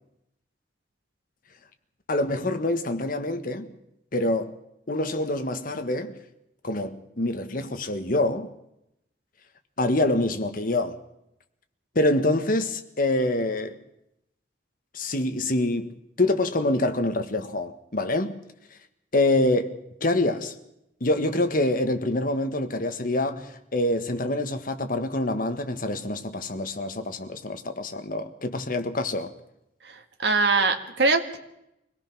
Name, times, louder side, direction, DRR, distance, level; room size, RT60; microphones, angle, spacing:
voice 1, 2.1-3.7 4.1-4.5 4.9-6.2 6.6-8.5 9.8-11.0 11.9-13.8 14.9-18.4 19.1-20.5 21.0-29.3, left 2 dB, 55° left, 1.6 m, -26 dB
voice 2, 29.8-31.4, right 3 dB, 75° right, 1.9 m, -23 dB
24.5 x 17.5 x 6.2 m
head